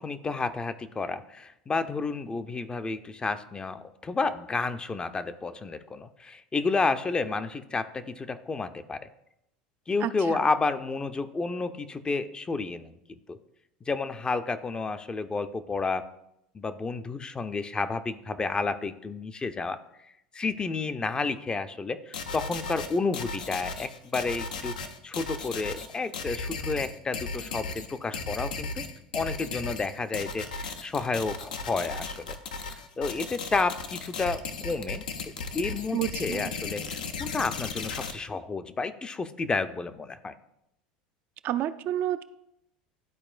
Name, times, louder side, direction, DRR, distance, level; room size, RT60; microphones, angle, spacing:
voice 1, 0.0-9.1 9.9-13.4 13.8-16.1 16.5-19.8 20.3-28.8 29.1-35.1 35.5-40.3, left 4 dB, 20° left, 11 dB, 0.5 m, -31 dB
voice 2, 10.0-10.4 35.9-36.5 41.4-42.2, right 12 dB, 50° right, 11 dB, 0.4 m, -30 dB
sound 1, 22.1-38.1, left 4 dB, 85° left, 0.6 m, -36 dB
12.0 x 4.2 x 2.4 m, 0.83 s
hypercardioid pair, 85°, 4 cm